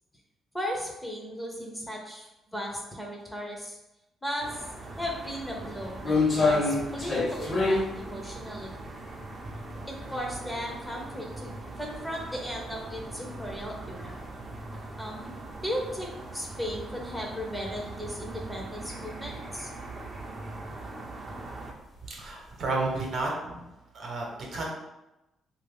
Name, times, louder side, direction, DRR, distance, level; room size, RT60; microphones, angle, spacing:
voice 1, 0.5-3.8 4.2-4.7 5.0-8.7 9.9-11.5 11.8-14.1 15.0-19.7, equal, 5° left, -1 dB, 0.7 m, -36 dB
sound 1, 4.4-21.7, right 2 dB, 35° right, 0.6 m, -41 dB
sound 2, 4.7-4.8 5.3-10.3 10.7-10.8 11.5-11.6 11.9-12.0 13.0-13.1 13.4-13.6 14.1-14.2 14.5-14.6 16.8-16.9 18.2-18.5 18.9-19.3 19.6-19.8 20.2-20.3 21.3-21.5 22.1-22.8 23.2-23.3, left 3 dB, 40° left, 1.0 m, -27 dB
voice 2, 22.2-23.6 23.9-24.7, right 2 dB, 60° right, -1 dB, 0.9 m, -31 dB
2.9 x 2.5 x 3.4 m, 0.96 s
cardioid pair, 90°, 0 cm